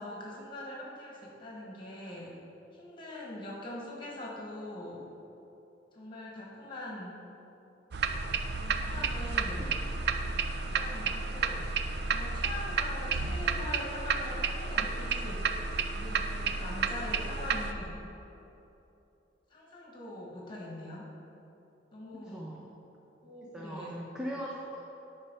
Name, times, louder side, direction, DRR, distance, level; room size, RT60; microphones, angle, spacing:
voice 1, 0.0-2.3 2.7-5.0 5.9-7.2 8.5-9.7 10.8-15.5 15.8-18.0 19.5-21.0 21.9-22.6 23.2-24.0, left 1 dB, 30° left, -4 dB, 1.7 m, -42 dB
sound 1, 7.9-17.7, right 4 dB, 65° right, 0.4 m, -32 dB
voice 2, 22.1-22.6 23.5-24.8, equal, 5° right, -4 dB, 0.6 m, -40 dB
9.9 x 4.4 x 5.5 m, 3.0 s
head